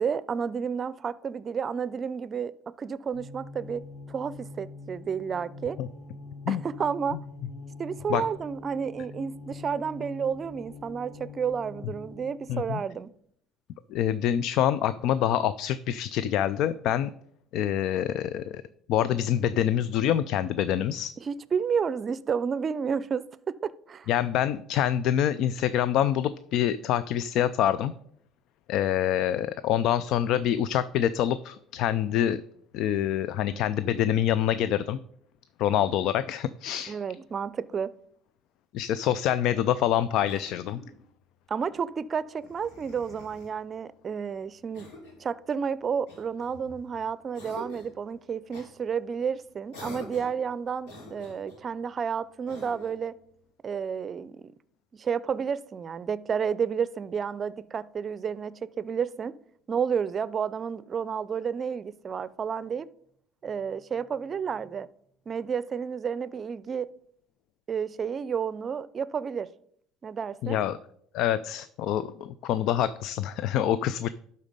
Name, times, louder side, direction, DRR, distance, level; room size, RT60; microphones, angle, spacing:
voice 1, 0.0-2.5 2.8-5.8 6.5-7.2 7.8-13.1 21.3-24.1 36.9-37.9 41.5-44.9 45.2-53.1 53.6-54.5 54.9-59.4 59.7-62.9 63.4-64.9 65.3-66.9 67.7-69.5 70.0-70.6, right 6 dB, 40° right, 0.5 m, -31 dB
sound 1, 3.1-12.5, left 3 dB, 50° left, 1.9 m, -44 dB
voice 2, 12.5-12.8 13.9-17.1 17.5-18.6 18.9-21.1 24.1-27.9 28.7-32.4 32.7-35.0 35.6-37.0 38.7-40.8 70.4-70.8 71.1-74.1, left 10 dB, 70° left, 0.3 m, -26 dB
Cough, 40.2-41.0 42.4-43.5 44.7-45.3 46.1-46.9 47.3-48.0 48.5-48.7 49.7-50.4 50.8-51.6 52.5-53.0, left 1 dB, 85° left, 2.7 m, -46 dB
11.5 x 4.1 x 5.3 m
supercardioid pair, 75°, 0 cm